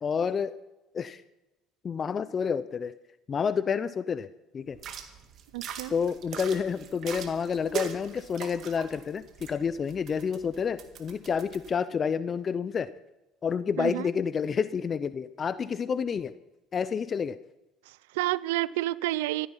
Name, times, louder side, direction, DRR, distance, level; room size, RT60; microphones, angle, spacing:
voice 1, 0.0-0.5 0.9-1.2 1.8-2.9 3.3-4.3 4.5-4.8 5.9-9.2 9.5-12.9 13.4-16.3 16.7-17.4, left 6 dB, 40° left, 0.6 m, -29 dB
sound 1, 4.7-11.7, right 8 dB, 55° right, 2.0 m, -41 dB
voice 2, 5.5-5.9 13.8-14.1 17.9-19.5, right 17 dB, 90° right, 0.5 m, -30 dB
15.5 x 14.0 x 5.7 m
supercardioid pair, 85°, 0 cm